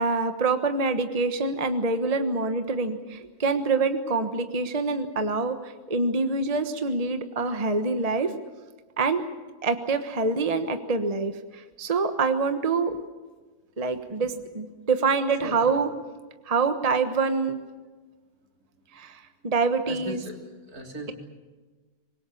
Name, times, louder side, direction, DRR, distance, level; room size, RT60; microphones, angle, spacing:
voice 1, 0.0-8.3 9.0-9.2 9.6-13.0 13.8-15.9 16.5-17.6 18.9-20.2, right 4 dB, 25° right, 8 dB, 1.3 m, -26 dB
voice 2, 15.4-15.8 19.8-20.4 20.7-21.1, right 2 dB, 75° right, 2 dB, 3.9 m, -37 dB
25.0 x 21.5 x 7.1 m, 1.3 s
omnidirectional pair, 1.6 m